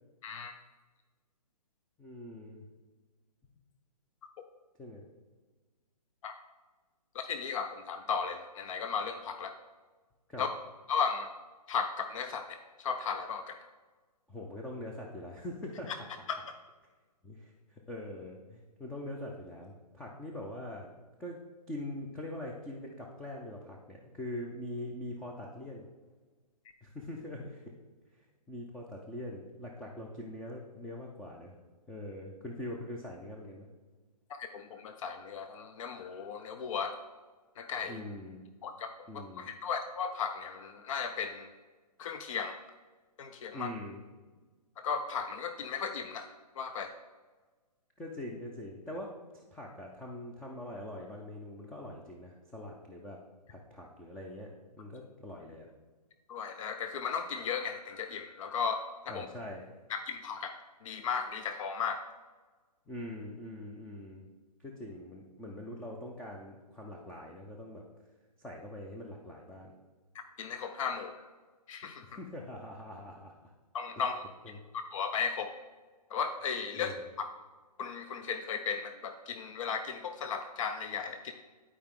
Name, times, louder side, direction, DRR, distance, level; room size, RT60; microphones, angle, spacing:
voice 1, 0.2-0.5 6.2-6.3 7.1-9.5 10.4-10.5 10.9-11.3 11.7-13.6 34.4-36.9 37.6-38.0 38.6-38.9 39.1-41.5 42.0-42.6 43.2-43.7 44.8-46.9 56.3-59.3 59.9-62.0 70.4-71.3 71.7-72.1 73.7-74.2 74.7-75.5 76.1-76.9 77.2-77.3 77.8-81.3, left 6 dB, 55° left, 7 dB, 0.6 m, -35 dB
voice 2, 2.0-2.6 4.8-5.0 10.3-10.5 14.3-15.9 17.2-20.9 21.2-21.4 21.7-25.9 26.8-27.6 28.5-31.5 31.9-33.7 37.8-38.4 39.1-39.5 43.5-44.0 48.0-53.2 53.5-55.7 59.1-59.7 62.9-64.3 64.6-67.8 68.4-69.7 72.0-73.3 74.4-74.6 76.8-77.0, left 1 dB, 5° left, -1 dB, 0.4 m, -43 dB
11.0 x 4.7 x 3.6 m, 1.3 s
hypercardioid pair, 145°, 21 cm